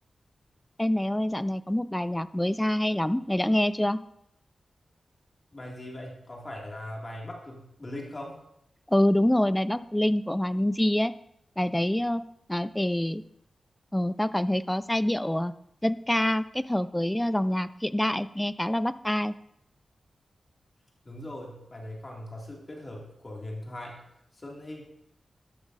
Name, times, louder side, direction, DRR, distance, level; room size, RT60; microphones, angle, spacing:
voice 1, 0.8-4.0 8.9-11.1 11.6-12.2 12.5-13.2 13.9-15.5 15.8-19.3, left 1 dB, 10° left, 15 dB, 0.3 m, -26 dB
voice 2, 5.5-8.4 21.0-24.0 24.3-24.8, left 1 dB, 30° left, -1 dB, 2.1 m, -40 dB
13.5 x 12.0 x 2.5 m, 0.78 s
wide cardioid pair, 115°, 0 cm